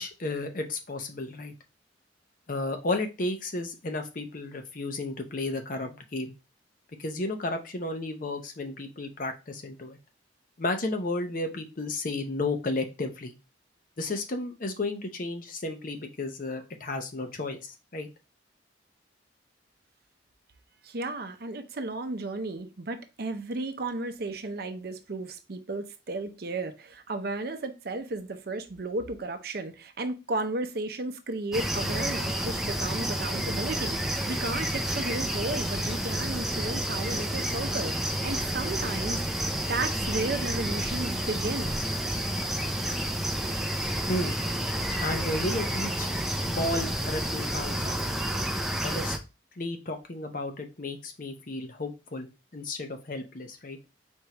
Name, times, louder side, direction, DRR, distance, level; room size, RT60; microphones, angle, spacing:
voice 1, 0.0-1.5 2.5-6.3 7.0-10.0 10.6-13.3 14.0-18.1 44.1-44.3 45.0-46.1 46.5-48.3 48.8-49.2 49.6-53.8, left 2 dB, 45° left, 0.7 m, -33 dB
voice 2, 20.8-37.9 38.2-39.2 39.7-42.3, right 2 dB, 55° right, 0.6 m, -34 dB
sound 1, 31.5-49.2, right 1 dB, ahead, 0.4 m, -30 dB
4.4 x 3.5 x 2.9 m
head